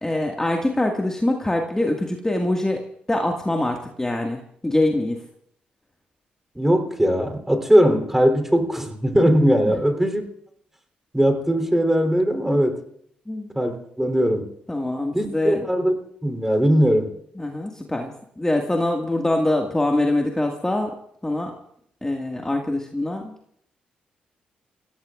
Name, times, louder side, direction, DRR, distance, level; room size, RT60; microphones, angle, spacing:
voice 1, 0.0-2.8 3.1-5.2 13.3-13.5 14.7-15.7 17.4-20.9 21.2-21.5 22.0-23.3, left 1 dB, 15° left, 1 dB, 2.0 m, -24 dB
voice 2, 6.6-10.3 11.1-12.8 13.6-14.5 15.1-15.9 16.2-17.1, equal, 10° right, 5 dB, 3.6 m, -20 dB
29.5 x 17.0 x 2.5 m, 0.69 s
hypercardioid pair, 45°, 4 cm